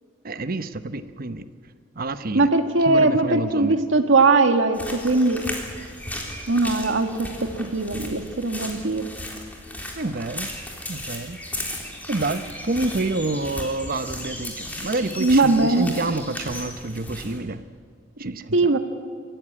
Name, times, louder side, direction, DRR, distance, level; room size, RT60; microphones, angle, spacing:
voice 1, 0.2-1.4 1.9-2.5 2.9-3.7 10.0-10.5 10.9-11.4 12.1-17.6 18.2-18.6, right 2 dB, 50° right, 11 dB, 0.9 m, -28 dB
voice 2, 2.3-5.4 6.5-7.3 7.6-9.1 15.2-15.9 18.5-18.8, right 3 dB, 80° right, 6 dB, 1.8 m, -20 dB
sound 1, 4.7-17.4, left 1 dB, 10° left, 3.6 m, -35 dB
26.0 x 15.0 x 9.8 m, 2.1 s
head